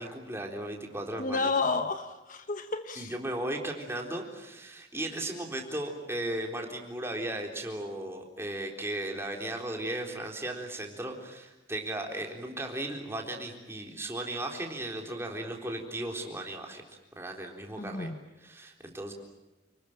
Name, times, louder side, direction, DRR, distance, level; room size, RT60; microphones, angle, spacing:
voice 1, 0.0-1.5 3.0-16.8 17.2-18.1 18.4-19.1, right 1 dB, 10° right, 1 dB, 3.8 m, -36 dB
voice 2, 1.2-3.1 17.8-18.2, left 3 dB, 40° left, 8 dB, 1.2 m, -31 dB
29.5 x 20.5 x 9.0 m, 1.1 s
head